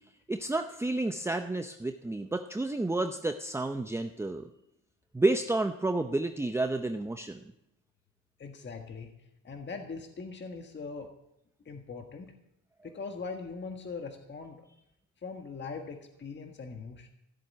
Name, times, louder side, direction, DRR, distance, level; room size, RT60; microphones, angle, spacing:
voice 1, 0.3-4.5 5.1-7.4, right 2 dB, 10° right, 7 dB, 0.7 m, -30 dB
voice 2, 8.4-9.1 9.4-11.1 11.6-12.3 12.8-14.6 15.2-17.1, left 4 dB, 35° left, 5 dB, 1.6 m, -41 dB
15.0 x 7.6 x 8.7 m, 0.83 s
cardioid pair, 90°, 30 cm